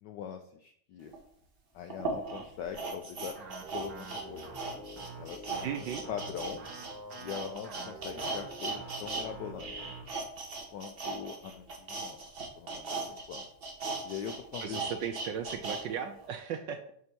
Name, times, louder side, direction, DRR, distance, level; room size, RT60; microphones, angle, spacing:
voice 1, 0.0-1.1 1.7-3.4 3.7-4.6 5.2-5.7 6.1-6.6 7.2-9.8 10.7-12.2 12.6-13.4 14.0-14.8, left 8 dB, 80° left, 5 dB, 0.9 m, -42 dB
sound 1, 1.1-1.2 1.9-9.3 9.5-15.8 16.2-16.3, right 3 dB, 40° right, 0.8 m, -38 dB
sound 2, 3.3-10.0, right 2 dB, 55° right, 2.0 m, -46 dB
voice 2, 5.6-6.0 14.6-16.9, right 8 dB, 75° right, 6 dB, 1.1 m, -36 dB
7.7 x 2.8 x 6.0 m, 0.65 s
omnidirectional pair, 2.4 m